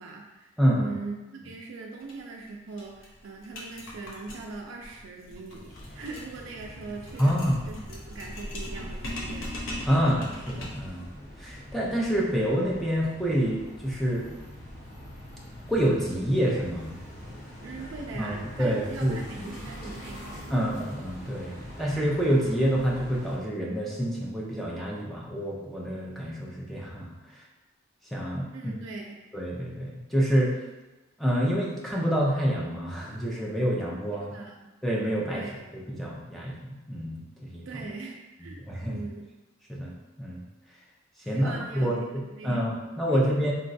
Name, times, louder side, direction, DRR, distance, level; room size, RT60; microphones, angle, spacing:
voice 1, 0.0-7.4 7.7-9.5 17.6-20.3 28.5-29.2 34.2-34.7 35.3-35.7 37.7-39.3 41.2-42.1 42.4-42.6 43.1-43.2, right 3 dB, 75° right, 0 dB, 0.3 m, -41 dB
voice 2, 0.6-0.9 7.2-7.6 9.9-11.1 11.4-14.3 15.7-16.9 18.1-19.2 20.5-27.1 28.1-28.7 29.3-30.6 31.2-34.3 34.8-35.4 35.7-37.8 38.7-39.0 39.7-39.9 40.2-40.4 41.3-43.5, equal, ahead, -5 dB, 0.4 m, -27 dB
sound 1, 2.0-2.1 2.4-2.5 2.8-10.9, left 1 dB, 70° left, 0.6 m, -39 dB
sound 2, 5.7-23.4, equal, 45° left, 0.9 m, -44 dB
3.7 x 2.2 x 2.6 m, 1.1 s
head